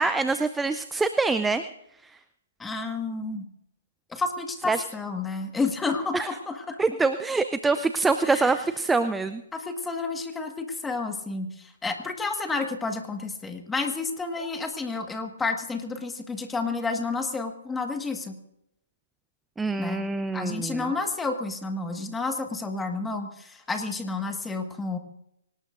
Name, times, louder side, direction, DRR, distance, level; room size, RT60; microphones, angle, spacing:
voice 1, 0.0-1.6 2.0-2.2 4.7-4.8 6.1-6.3 6.8-9.4 19.6-20.9, right 3 dB, 5° right, 11 dB, 0.5 m, -25 dB
voice 2, 2.6-3.5 4.1-6.8 8.2-8.5 9.5-18.4 19.8-20.0 20.3-25.0, left 3 dB, 10° left, 5 dB, 1.7 m, -30 dB
24.0 x 19.0 x 2.6 m, 0.82 s
figure-of-eight pair, 130°, 0 cm